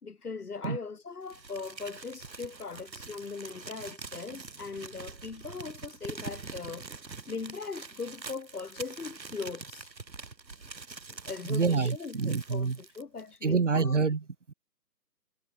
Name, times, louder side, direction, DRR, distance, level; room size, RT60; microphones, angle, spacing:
voice 1, 0.0-6.9 7.3-9.9 11.1-14.0, left 4 dB, 60° left, 3.5 m, -40 dB
Crumpling crinkling, 1.3-13.3, right 4 dB, 85° right, 7.1 m, -45 dB
voice 2, 11.4-12.8 13.4-14.5, right 5 dB, 45° right, 2.3 m, -27 dB
hypercardioid pair, 175°, 50 cm